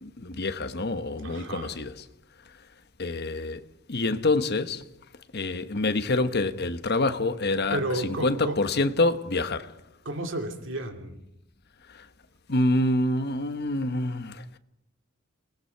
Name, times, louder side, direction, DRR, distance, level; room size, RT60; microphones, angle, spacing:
voice 1, 0.0-2.0 3.0-3.6 3.9-4.8 5.3-9.7 12.5-14.4, left 2 dB, 50° left, 1.1 m, -26 dB
voice 2, 1.2-1.7 7.7-8.6 10.0-11.2, right 1 dB, 65° right, 2.7 m, -32 dB
29.5 x 19.5 x 4.6 m
head